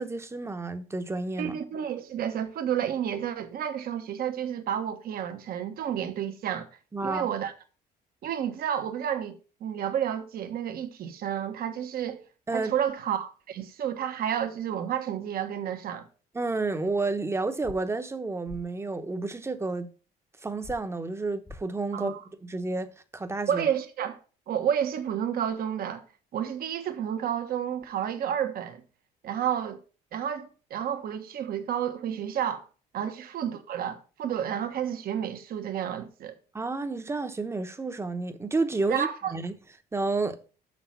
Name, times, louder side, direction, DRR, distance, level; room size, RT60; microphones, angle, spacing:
voice 1, 0.0-1.6 6.9-7.3 12.5-12.7 16.3-19.9 20.4-23.7 36.5-39.6 39.9-40.4, right 3 dB, 15° right, 1.0 m, -30 dB
voice 2, 1.4-6.7 7.0-7.5 8.2-12.2 12.5-16.1 21.9-22.2 23.5-24.2 24.5-26.0 26.3-28.8 29.2-29.8 30.1-32.7 32.9-36.3 38.9-39.3, right 9 dB, 60° right, 1.4 m, -30 dB
sound 1, 17.6-17.8 18.5-18.6 20.6-20.8 21.4-21.6, left 3 dB, 10° left, 0.6 m, -42 dB
6.3 x 6.1 x 5.8 m
cardioid pair, 110°, 17 cm